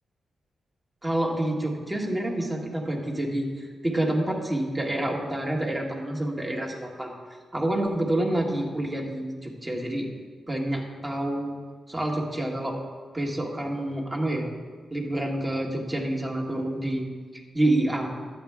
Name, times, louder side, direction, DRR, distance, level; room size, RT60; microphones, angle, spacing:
voice 1, 1.0-7.1 7.5-10.1 10.5-11.6 11.9-12.8 13.1-14.4 14.9-17.0 17.3-18.1, right 1 dB, 20° right, -1 dB, 1.6 m, -28 dB
11.5 x 7.8 x 3.5 m, 1.5 s
cardioid pair, 80°, 0 cm